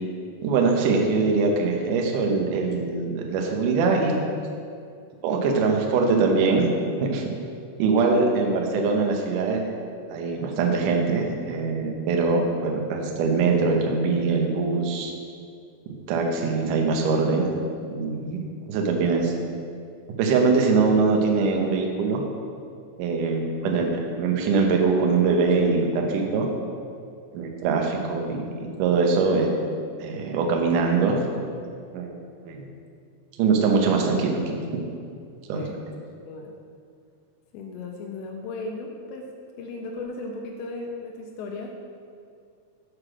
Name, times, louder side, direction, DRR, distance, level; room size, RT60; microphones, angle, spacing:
voice 1, 0.4-4.2 5.2-6.7 7.0-7.2 7.8-9.6 10.1-15.1 15.9-17.5 17.9-18.4 18.7-19.3 20.2-22.2 23.0-23.9 24.2-26.5 27.3-29.5 30.0-31.2 31.9-32.1 32.5-32.7 33.4-34.6 35.5-35.6, right 4 dB, 90° right, 1 dB, 1.8 m, -22 dB
voice 2, 37.5-39.3 39.6-41.7, left 3 dB, 85° left, 1 dB, 2.9 m, -36 dB
8.1 x 4.8 x 6.2 m, 2.4 s
omnidirectional pair, 5.1 m